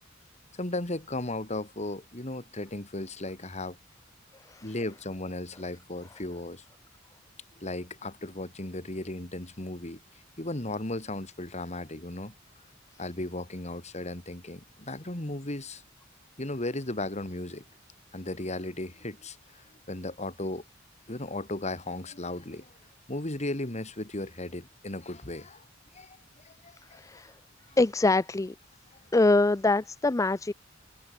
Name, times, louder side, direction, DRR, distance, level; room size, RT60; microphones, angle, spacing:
voice 1, 0.6-3.8 4.6-6.6 7.6-10.0 10.4-12.3 13.0-15.8 16.4-17.6 18.1-19.4 19.9-20.6 21.1-22.6 23.1-25.6 25.9-26.2 26.4-26.5, left 2 dB, 35° left, 3.0 m, -35 dB
voice 2, 26.9-27.3 27.8-28.5 29.1-30.5, left 2 dB, 15° left, 0.4 m, -24 dB
head